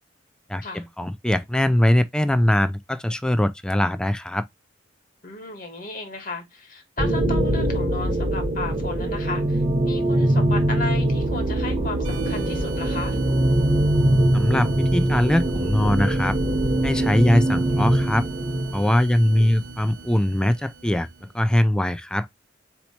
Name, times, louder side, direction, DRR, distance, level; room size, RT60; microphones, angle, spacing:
voice 1, 0.5-4.5 14.3-16.4 16.8-18.3 18.7-21.1 21.3-22.3, left 1 dB, 5° left, 0.3 m, -21 dB
voice 2, 5.2-13.2 19.3-19.5, left 3 dB, 45° left, 1.2 m, -34 dB
sound 1, 7.0-18.9, right 1 dB, 35° right, 1.0 m, -22 dB
sound 2, 12.0-21.4, right 3 dB, 75° right, 0.8 m, -39 dB
4.3 x 2.9 x 4.1 m
head